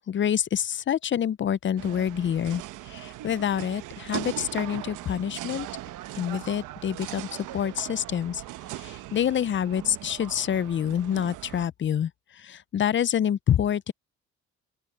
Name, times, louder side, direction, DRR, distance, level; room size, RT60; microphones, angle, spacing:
voice 1, 0.0-5.7 6.2-8.4 8.7-13.9, left 9 dB, 40° left, 0.5 m, -27 dB
sound 1, 1.8-11.7, right 15 dB, 90° right, 1.0 m, -39 dB
open air
cardioid pair, 90°, 30 cm